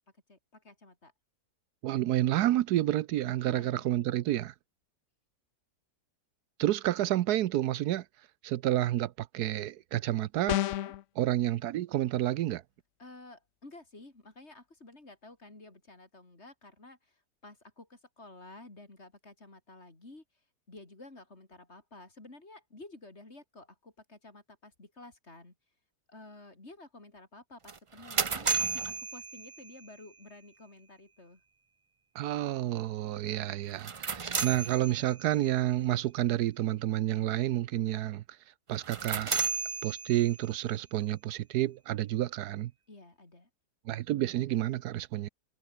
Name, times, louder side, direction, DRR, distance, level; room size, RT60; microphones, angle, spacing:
voice 1, 0.3-1.1 3.4-3.9 10.7-10.9 13.0-20.2 20.7-25.5 26.1-31.4 42.9-43.5, left 2 dB, 40° left, 4.4 m, -52 dB
voice 2, 1.8-4.5 6.6-8.0 8.4-10.6 11.2-12.6 32.1-38.2 38.7-39.3 39.8-42.7 43.9-45.3, right 14 dB, 80° right, 1.2 m, -29 dB
sound 1, 10.5-11.0, left 13 dB, 65° left, 0.8 m, -29 dB
sound 2, 27.7-29.9 33.7-35.4 38.7-40.5, right 5 dB, 50° right, 0.3 m, -33 dB
omnidirectional pair, 1.7 m